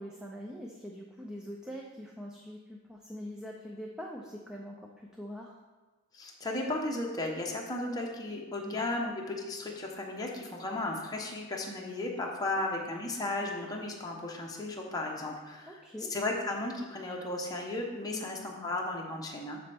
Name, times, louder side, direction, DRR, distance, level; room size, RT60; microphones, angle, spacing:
voice 1, 0.0-5.6 8.6-9.1 15.7-16.1 18.1-18.3, equal, 5° right, -1 dB, 0.5 m, -43 dB
voice 2, 6.1-15.7 16.1-19.6, left 2 dB, 15° left, -1 dB, 1.0 m, -35 dB
12.5 x 4.2 x 3.5 m, 1.3 s
head